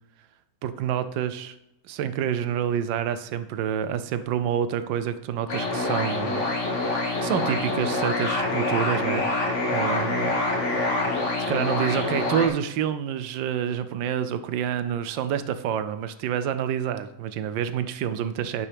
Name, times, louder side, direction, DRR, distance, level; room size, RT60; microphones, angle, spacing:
voice 1, 0.6-1.6 1.8-6.4 7.2-9.2 9.7-10.4 11.5-18.7, right 9 dB, 90° right, 11 dB, 1.4 m, -27 dB
sound 1, 5.5-12.5, left 2 dB, 40° left, 1.7 m, -26 dB
10.0 x 7.0 x 3.4 m, 0.89 s
omnidirectional pair, 2.0 m